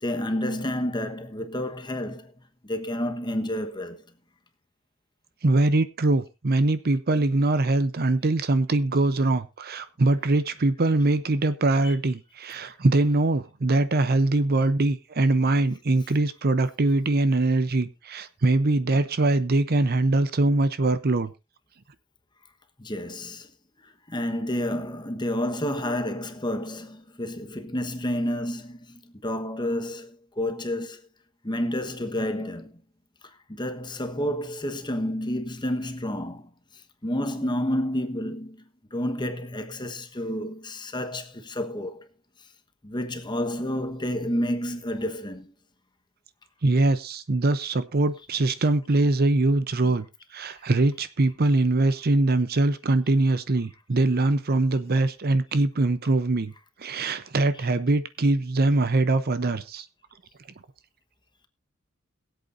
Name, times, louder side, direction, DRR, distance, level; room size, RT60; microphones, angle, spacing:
voice 1, 0.0-2.3 2.6-4.0 7.1-7.2 11.8-11.9 22.8-23.5 24.1-31.0 31.4-32.8 33.5-36.5 37.0-38.6 38.9-42.1 42.8-45.5 57.5-57.7, left 1 dB, 20° left, 1.2 m, -30 dB
voice 2, 5.4-21.3 46.6-50.0 50.3-56.5 56.8-59.9, right 2 dB, 45° right, 0.7 m, -23 dB
22.5 x 8.1 x 2.6 m
head